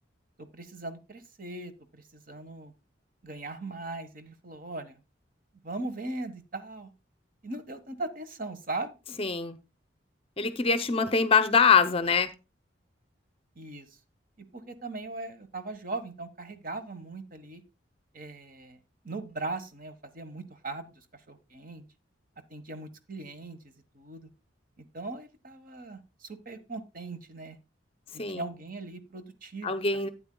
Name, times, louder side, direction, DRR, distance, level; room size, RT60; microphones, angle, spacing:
voice 1, 0.4-2.7 3.2-5.0 5.6-6.9 7.4-9.0 13.5-14.0 14.5-17.6 18.1-21.8 22.5-24.3 24.8-27.6 28.1-30.1, right 2 dB, 45° right, 1.3 m, -39 dB
voice 2, 9.2-9.6 10.4-12.3 28.2-28.5 29.6-30.1, left 5 dB, 30° left, 0.6 m, -24 dB
12.5 x 8.8 x 2.2 m
head